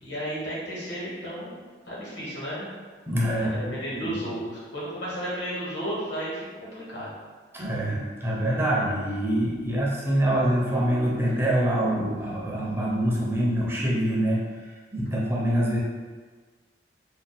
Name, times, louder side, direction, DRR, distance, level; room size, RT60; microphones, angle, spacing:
voice 1, 0.0-1.5 1.9-2.7 3.4-7.1, equal, 75° left, -7 dB, 1.3 m, -33 dB
voice 2, 3.1-4.1 7.5-14.4 14.9-15.8, right 1 dB, 15° right, -5 dB, 0.4 m, -25 dB
2.6 x 2.0 x 3.9 m, 1.4 s
head